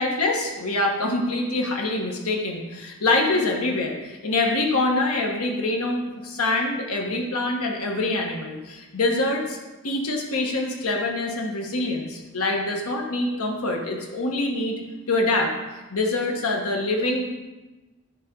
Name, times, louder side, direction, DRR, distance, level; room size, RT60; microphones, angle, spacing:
voice 1, 0.0-9.6 9.8-14.8 15.1-17.3, left 2 dB, 85° left, 1 dB, 1.3 m, -25 dB
11.0 x 3.6 x 5.3 m, 1.1 s
head